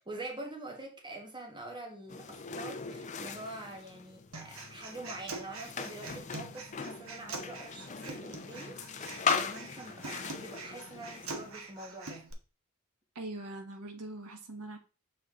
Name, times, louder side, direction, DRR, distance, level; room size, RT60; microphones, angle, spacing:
voice 1, 0.1-12.2, right 2 dB, 20° right, 1.2 m, -45 dB
sound 1, 2.1-11.5, left 6 dB, 30° left, 0.5 m, -39 dB
Human voice, 4.3-12.3, right 3 dB, 65° right, 1.0 m, -44 dB
voice 2, 13.1-14.8, right 2 dB, 85° right, 1.2 m, -42 dB
6.6 x 4.1 x 3.6 m
head